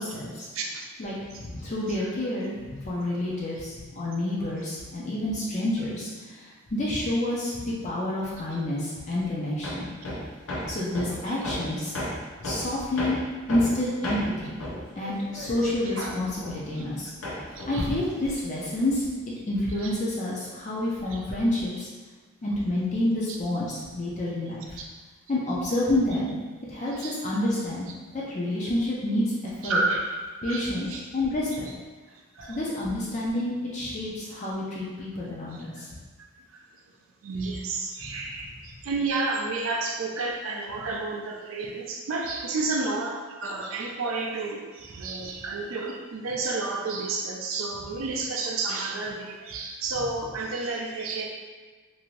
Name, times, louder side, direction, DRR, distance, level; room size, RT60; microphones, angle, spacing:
voice 1, 0.0-0.5 1.0-9.9 10.6-12.0 12.4-13.2 13.5-14.6 15.0-17.1 17.7-19.1 19.5-21.9 22.4-24.8 25.3-26.4 26.7-27.9 28.1-29.2 29.6-29.8 30.4-30.9 31.1-31.7 32.5-35.9 38.0-38.1, left 1 dB, 35° left, -6 dB, 0.4 m, -28 dB
voice 2, 0.5-0.8 11.3-11.4 16.0-16.1 17.6-17.9 27.0-27.2 29.6-30.1 30.5-31.0 32.4-32.6 37.2-51.3, right 3 dB, 70° right, 1 dB, 0.4 m, -31 dB
Hammer, 9.6-17.0 17.2-19.0, left 1 dB, 80° left, 0.6 m, -35 dB
2.6 x 2.5 x 3.0 m, 1.4 s
head